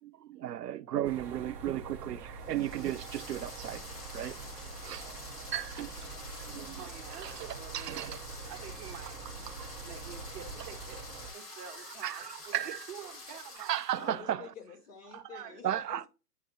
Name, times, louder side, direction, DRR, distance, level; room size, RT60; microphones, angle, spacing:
voice 1, 0.0-3.9 4.1-4.4 4.8-5.0 5.5-6.1 6.4-6.8 7.2-7.5 7.7-8.2 9.5-9.7 11.8-12.8 13.6-14.5 15.6-16.1, right 12 dB, 90° right, 0.6 m, -35 dB
sound 1, 1.0-11.3, right 4 dB, 5° right, 0.5 m, -45 dB
sound 2, 2.4-14.1, left 2 dB, 85° left, 3.7 m, -48 dB
voice 2, 6.7-11.0 11.3-14.2 15.1-15.8, right 9 dB, 25° right, 0.9 m, -48 dB
voice 3, 14.0-16.1, left 6 dB, 55° left, 2.5 m, -48 dB
9.9 x 3.9 x 2.5 m
hypercardioid pair, 140°, 47 cm